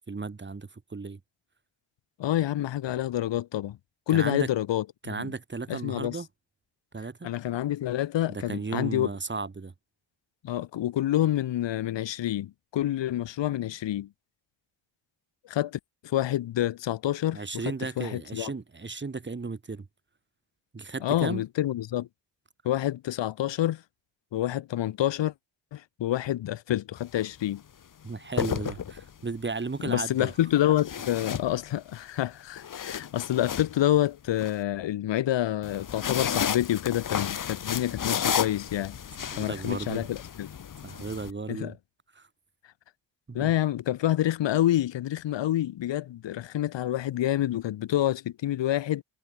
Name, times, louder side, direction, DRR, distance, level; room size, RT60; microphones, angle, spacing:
voice 1, 0.1-1.2 4.1-4.5 5.0-6.3 6.9-7.3 8.3-9.7 17.3-19.9 20.7-21.4 28.0-30.3 39.2-40.1 40.8-41.7 42.2-42.3 43.3-43.5, right 4 dB, 25° right, 2.4 m, -35 dB
voice 2, 2.2-3.8 4.1-5.3 5.7-6.2 7.2-9.1 10.4-14.1 15.5-18.5 21.0-22.1 22.6-23.8 24.3-25.3 25.7-27.6 29.8-39.0 39.4-40.5 41.5-41.7 43.3-49.0, left 13 dB, 80° left, 1.7 m, -28 dB
sound 1, 27.0-27.2 28.1-29.3 30.8-32.0 32.4-34.5 35.6-41.3, left 8 dB, 45° left, 1.4 m, -32 dB
cardioid pair, 85°, 43 cm